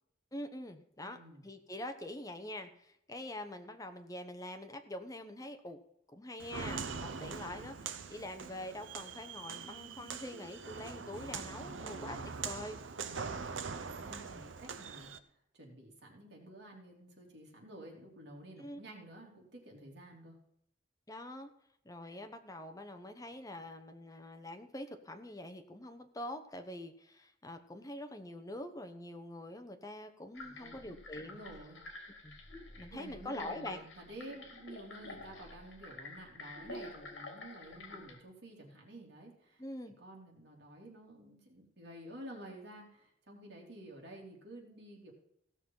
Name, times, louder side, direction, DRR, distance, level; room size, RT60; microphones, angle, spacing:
voice 1, 0.3-1.2 1.4-5.8 6.1-7.7 8.1-12.2 12.4-12.8 14.3-14.5 18.6-18.8 21.1-21.5 21.8-31.4 32.2-32.4 32.8-33.8 39.6-39.9, left 1 dB, 20° left, 7 dB, 1.0 m, -45 dB
voice 2, 1.0-1.5 11.5-12.3 13.0-15.1 15.5-20.4 30.4-30.9 31.2-31.8 32.7-39.6 40.0-45.1, right 1 dB, 60° right, -1 dB, 3.2 m, -51 dB
Walk footsteps, 6.4-15.2, right 5 dB, 85° right, 0.8 m, -43 dB
sound 1, 30.3-38.2, left 2 dB, 70° left, 2.2 m, -49 dB
16.0 x 6.3 x 5.6 m, 0.76 s
head